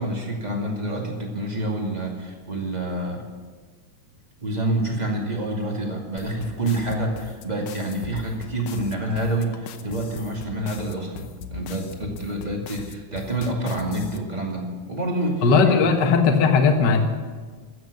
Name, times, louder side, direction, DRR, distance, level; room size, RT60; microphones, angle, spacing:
voice 1, 0.0-3.2 4.4-15.8, right 1 dB, 15° right, 0 dB, 1.9 m, -28 dB
sound 1, 6.2-14.2, left 6 dB, 75° left, 2.3 m, -39 dB
voice 2, 15.4-17.1, left 5 dB, 50° left, 3 dB, 1.4 m, -17 dB
14.0 x 8.1 x 9.9 m, 1.4 s
omnidirectional pair, 3.8 m